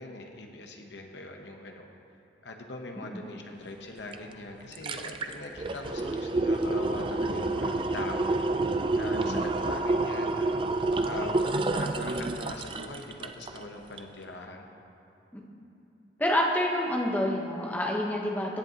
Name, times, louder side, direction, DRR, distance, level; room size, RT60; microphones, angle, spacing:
voice 1, 0.0-1.8 2.4-8.3 8.9-10.6 11.0-11.4 11.7-14.7, left 2 dB, 70° left, 2 dB, 0.9 m, -41 dB
sound 1, 4.1-4.2 4.5-13.6 14.0-14.1, right 2 dB, 30° right, 0.3 m, -29 dB
voice 2, 16.2-18.6, left 1 dB, 10° left, -2 dB, 0.9 m, -28 dB
17.0 x 8.0 x 2.9 m, 2.8 s
head